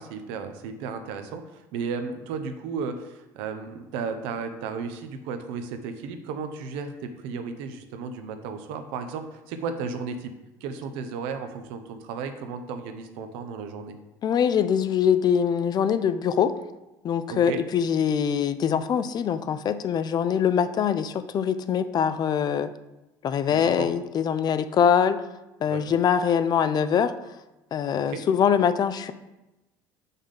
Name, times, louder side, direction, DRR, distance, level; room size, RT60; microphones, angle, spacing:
voice 1, 0.0-10.3 10.6-14.0 17.3-17.6 23.5-23.9 25.6-25.9 28.0-28.2, right 5 dB, 75° right, 8 dB, 0.7 m, -34 dB
voice 2, 14.2-16.5 17.0-22.7 23.2-25.3 25.6-27.1 27.7-29.1, left 8 dB, 45° left, 12 dB, 0.5 m, -23 dB
5.4 x 3.6 x 5.7 m, 0.98 s
hypercardioid pair, 75°, 10 cm